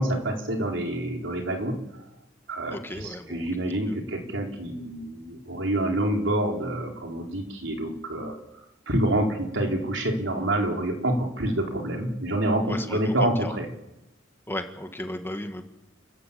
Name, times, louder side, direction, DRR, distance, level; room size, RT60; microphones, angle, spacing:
voice 1, 0.0-1.8 2.5-2.8 3.3-8.4 8.9-13.7, right 1 dB, 75° right, 2 dB, 4.4 m, -27 dB
voice 2, 2.7-3.5 3.7-4.0 12.7-13.6 14.5-15.6, left 1 dB, 10° left, 6 dB, 1.8 m, -35 dB
29.0 x 14.5 x 8.6 m, 0.90 s
head